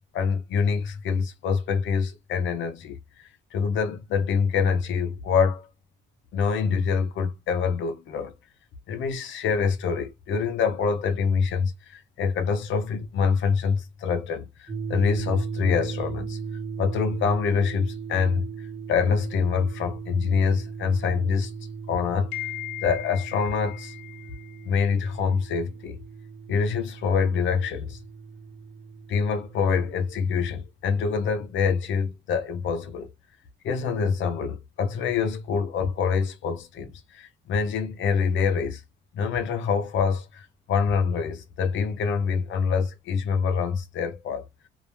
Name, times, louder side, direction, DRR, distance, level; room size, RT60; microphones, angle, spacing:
voice 1, 0.1-5.7 6.3-8.3 8.9-16.4 16.8-21.5 21.9-26.0 26.5-28.0 29.1-33.1 33.6-38.8 39.1-44.4, left 6 dB, 75° left, 0.5 m, -26 dB
sound 1, 14.7-30.5, right 5 dB, 30° right, 0.9 m, -37 dB
2.4 x 2.0 x 3.0 m
cardioid pair, 90°, 20 cm